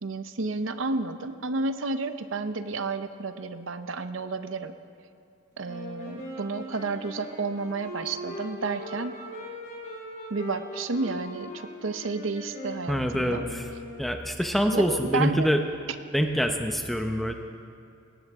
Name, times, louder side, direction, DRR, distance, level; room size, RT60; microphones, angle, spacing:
voice 1, 0.0-4.7 5.6-9.1 10.3-13.5 14.7-15.5, right 3 dB, 80° right, 10 dB, 0.7 m, -31 dB
Wind instrument woodwind instrument, 5.6-14.4, equal, 40° left, 4.7 m, -40 dB
voice 2, 12.9-13.7 14.0-15.6 16.1-17.3, equal, ahead, 4 dB, 0.8 m, -25 dB
20.5 x 18.0 x 3.6 m, 2.5 s
head